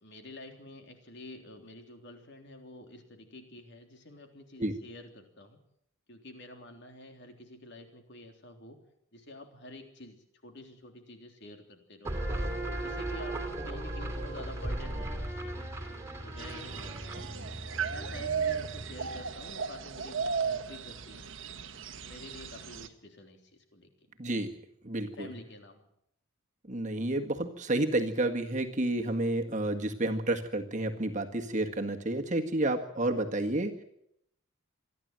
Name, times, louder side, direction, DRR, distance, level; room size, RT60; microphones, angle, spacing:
voice 1, 0.0-5.6 6.1-8.8 9.1-12.2 12.8-15.7 16.2-17.5 17.9-21.3 21.9-23.9 25.1-25.9, left 1 dB, 50° left, 5 dB, 3.4 m, -49 dB
sound 1, 12.0-19.4, right 1 dB, 15° right, 2.9 m, -37 dB
sound 2, 16.4-22.9, right 6 dB, 60° right, 1.3 m, -36 dB
voice 2, 24.8-25.3 26.7-33.7, right 1 dB, 35° right, 4 dB, 1.7 m, -30 dB
26.5 x 11.5 x 9.2 m, 0.74 s
head